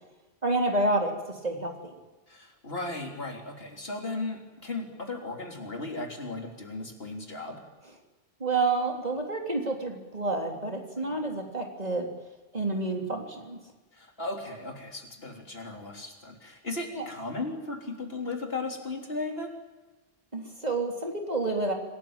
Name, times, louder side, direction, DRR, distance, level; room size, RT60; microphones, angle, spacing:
voice 1, 0.4-1.9 8.4-12.1 12.5-13.6 16.9-17.1 20.3-21.7, right 2 dB, 40° right, 2 dB, 3.5 m, -29 dB
voice 2, 2.3-7.6 11.1-11.2 13.9-19.5, left 2 dB, 60° left, 2 dB, 3.8 m, -36 dB
27.0 x 18.5 x 8.9 m, 1.1 s
omnidirectional pair, 1.1 m